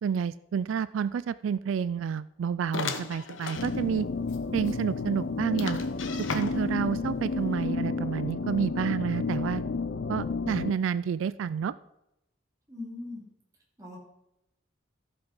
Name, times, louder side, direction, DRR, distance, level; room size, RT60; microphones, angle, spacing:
voice 1, 0.0-4.1 4.5-5.8 6.3-9.6 10.1-11.7, right 7 dB, 90° right, 17 dB, 0.3 m, -29 dB
sound 1, 2.7-3.7 4.3-4.4 4.7-4.8 5.6-6.8, left 4 dB, 85° left, 1.0 m, -35 dB
sound 2, 3.6-10.7, left 4 dB, 65° left, 0.5 m, -31 dB
voice 2, 12.7-13.3 13.8-14.0, left 2 dB, 15° right, -3 dB, 3.3 m, -40 dB
14.5 x 5.9 x 5.4 m, 0.86 s
head